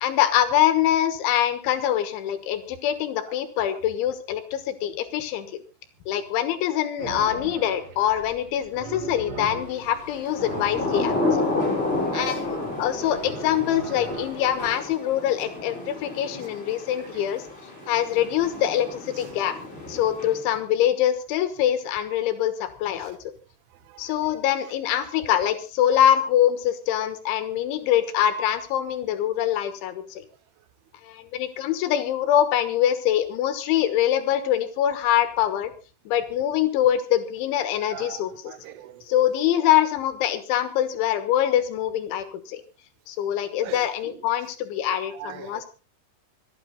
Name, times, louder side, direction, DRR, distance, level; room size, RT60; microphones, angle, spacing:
voice 1, 0.0-5.6 6.1-11.2 12.1-17.4 17.9-19.6 19.9-23.2 24.0-30.2 31.0-35.7 36.1-38.5 39.1-42.6 43.1-45.7, left 11 dB, 85° left, 11 dB, 3.7 m, -24 dB
sound 1, 7.0-14.7, right 5 dB, 40° right, 2.9 m, -40 dB
Thunder / Rain, 10.1-20.6, left 2 dB, 10° left, 7.1 m, -31 dB
voice 2, 12.1-12.7 13.0-13.1 17.0-17.2 17.8-17.9 23.0-23.1 23.9-24.3 37.8-39.1 43.6-44.2 45.1-45.7, right 12 dB, 85° right, 13 dB, 3.5 m, -41 dB
26.5 x 9.2 x 4.0 m, 0.34 s
omnidirectional pair, 5.3 m